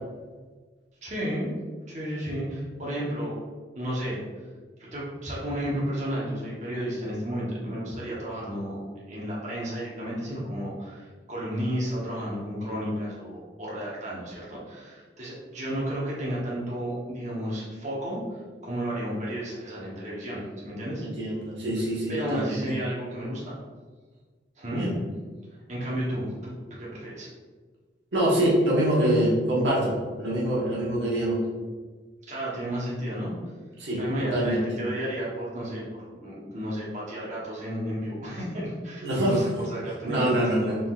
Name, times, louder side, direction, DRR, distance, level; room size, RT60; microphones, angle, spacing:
voice 1, 1.0-1.5 1.9-3.3 3.7-4.2 4.9-8.8 9.1-21.0 22.1-23.5 24.6-24.9 25.7-26.5 26.8-27.3 32.3-33.3 33.9-40.8, equal, 45° right, -6 dB, 1.0 m, -32 dB
voice 2, 21.0-22.6 24.7-24.9 28.1-31.4 33.8-34.6 39.0-39.4 40.0-40.8, right 1 dB, 85° right, -6 dB, 1.2 m, -25 dB
4.1 x 3.7 x 2.4 m, 1.4 s
head